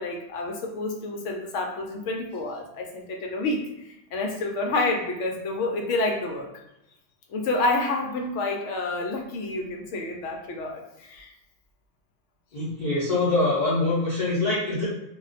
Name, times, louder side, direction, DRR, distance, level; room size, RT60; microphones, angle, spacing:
voice 1, 0.0-6.5 7.3-11.3, left 2 dB, 70° left, 2 dB, 0.9 m, -29 dB
voice 2, 12.5-14.9, left 2 dB, 40° left, -8 dB, 0.7 m, -24 dB
2.4 x 2.2 x 3.9 m, 0.88 s
omnidirectional pair, 1.4 m